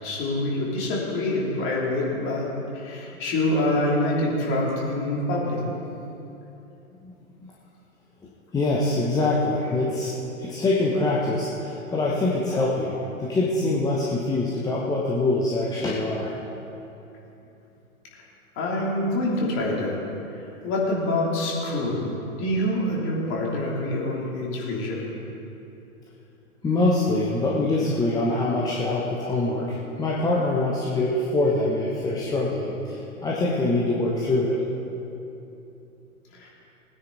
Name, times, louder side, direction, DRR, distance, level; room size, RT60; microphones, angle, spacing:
voice 1, 0.0-2.5 2.7-5.6 18.5-20.0 20.3-25.1 36.3-36.5, left 1 dB, 30° left, -4 dB, 3.3 m, -26 dB
voice 2, 8.5-10.1 10.4-16.4 26.6-34.6, left 2 dB, 10° left, -5 dB, 1.0 m, -24 dB
20.0 x 9.7 x 4.1 m, 2.9 s
figure-of-eight pair, 120°, 42 cm